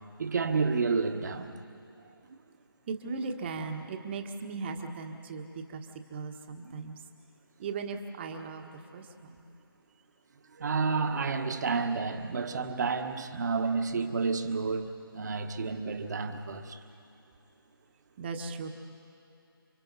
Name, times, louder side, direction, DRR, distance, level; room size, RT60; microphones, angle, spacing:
voice 1, 0.2-1.6 10.5-16.8, right 4 dB, 45° right, 6 dB, 1.5 m, -30 dB
voice 2, 2.9-5.8 6.1-7.0 7.6-9.4 18.2-18.7, right 4 dB, 25° right, 5 dB, 1.4 m, -38 dB
29.5 x 24.5 x 4.1 m, 2.9 s
figure-of-eight pair, 155°, 13 cm